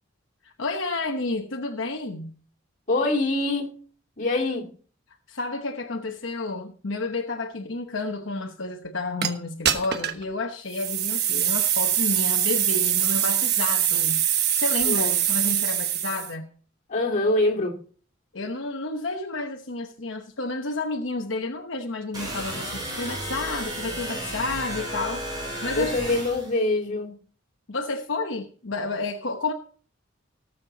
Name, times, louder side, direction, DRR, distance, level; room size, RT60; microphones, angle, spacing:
voice 1, 0.4-2.3 5.3-14.2 14.5-16.5 18.3-25.2 25.6-25.9 27.7-29.5, left 3 dB, 70° left, 3 dB, 1.0 m, -31 dB
voice 2, 2.9-3.7 4.2-4.7 14.8-15.1 16.9-17.7 25.8-27.1, left 2 dB, 40° left, -1 dB, 2.8 m, -24 dB
sound 1, 9.2-9.3 9.6-10.2 10.7-16.3, right 10 dB, 55° right, 1.2 m, -23 dB
sound 2, 22.1-26.5, right 1 dB, 20° right, 7.2 m, -33 dB
18.0 x 7.6 x 4.0 m, 0.44 s
head